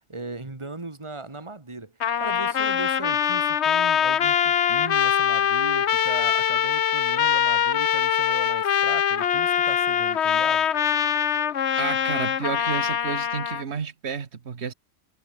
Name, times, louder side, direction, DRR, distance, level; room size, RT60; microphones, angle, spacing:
voice 1, 0.1-10.7, right 3 dB, 25° right, 2.3 m, -38 dB
Trumpet, 2.0-13.6, left 8 dB, 65° left, 1.2 m, -23 dB
voice 2, 11.8-14.7, right 6 dB, 60° right, 1.7 m, -31 dB
omnidirectional pair, 1.3 m